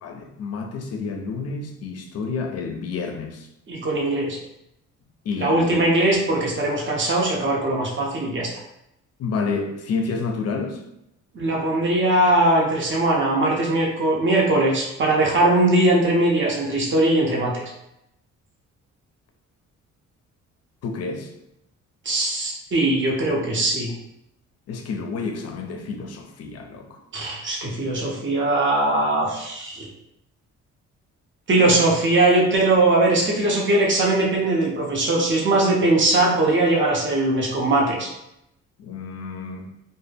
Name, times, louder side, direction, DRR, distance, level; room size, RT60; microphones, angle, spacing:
voice 1, 0.0-3.5 5.2-5.8 9.2-10.8 20.8-21.3 24.7-27.0 38.8-39.7, left 4 dB, 55° left, 4 dB, 0.5 m, -29 dB
voice 2, 3.7-4.4 5.4-8.5 11.3-17.7 22.0-23.9 27.1-29.9 31.5-38.1, right 2 dB, 40° right, -2 dB, 0.8 m, -20 dB
2.1 x 2.0 x 3.3 m, 0.84 s
cardioid pair, 90°, 30 cm